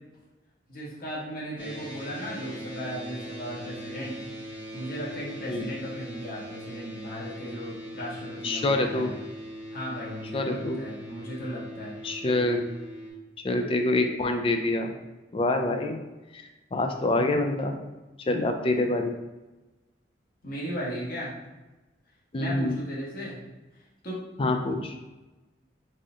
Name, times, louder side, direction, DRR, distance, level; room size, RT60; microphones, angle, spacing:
voice 1, 0.7-4.1 4.7-9.1 9.7-12.0 20.4-21.3 22.3-23.4 24.0-24.2, equal, 50° left, -6 dB, 1.3 m, -36 dB
sound 1, 1.6-13.1, equal, 5° right, 0.8 m, -41 dB
voice 2, 8.4-9.1 10.3-10.8 12.0-12.7 13.4-14.9 15.3-16.0 16.3-16.4 16.7-17.8 18.2-19.2 22.3-22.8 24.4-24.9, left 2 dB, 30° left, 5 dB, 0.3 m, -26 dB
4.1 x 2.4 x 3.7 m, 1.1 s
head